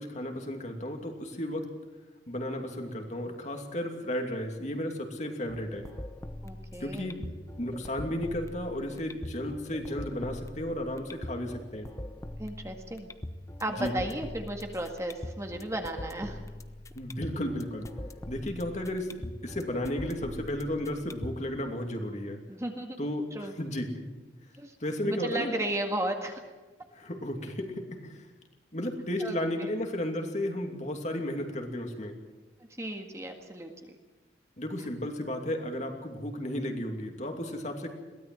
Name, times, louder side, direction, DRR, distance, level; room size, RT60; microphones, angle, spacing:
voice 1, 0.0-1.6 2.3-5.9 6.8-7.2 7.6-11.9 13.8-13.9 16.9-17.9 18.3-22.4 23.0-24.0 24.8-25.5 27.0-28.3 28.7-32.2 34.6-37.9, left 1 dB, 40° left, 3 dB, 2.7 m, -34 dB
sound 1, 5.5-21.5, left 1 dB, 15° left, 0.8 m, -42 dB
voice 2, 6.4-7.1 12.4-13.1 13.6-16.4 22.5-23.0 23.3-23.5 24.6-24.8 25.0-26.4 29.2-29.7 32.8-33.9, right 1 dB, 15° right, 3 dB, 1.9 m, -34 dB
22.5 x 17.5 x 7.8 m, 1.2 s
head